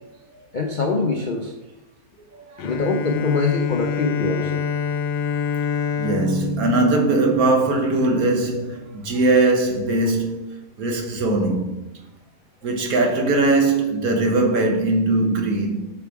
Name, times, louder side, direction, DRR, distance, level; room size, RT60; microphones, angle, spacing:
voice 1, 0.5-1.5 2.6-4.6, left 3 dB, 50° left, 0.6 m, -23 dB
Bowed string instrument, 2.6-8.1, left 6 dB, 85° left, 1.2 m, -27 dB
voice 2, 6.0-10.5 10.8-11.7 12.6-15.9, right 2 dB, 65° right, 1.6 m, -20 dB
8.5 x 5.0 x 4.7 m
omnidirectional pair, 1.7 m